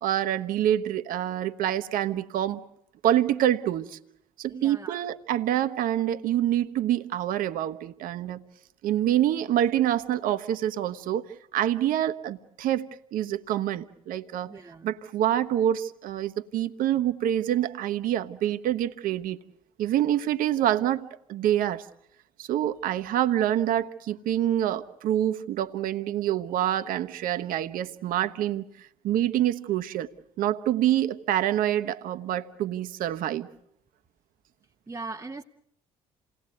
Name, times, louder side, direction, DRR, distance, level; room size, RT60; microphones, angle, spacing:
voice 1, 0.0-2.6 3.0-4.0 4.4-8.4 8.8-11.3 11.5-14.5 14.8-19.4 19.8-21.8 22.4-28.6 29.0-30.1 30.4-33.5, right 11 dB, 55° right, 9 dB, 1.1 m, -26 dB
voice 2, 4.5-5.0 14.5-15.0 34.9-35.4, right 3 dB, 15° right, 4 dB, 0.9 m, -39 dB
28.5 x 18.5 x 8.0 m, 0.74 s
figure-of-eight pair, 55°, 17 cm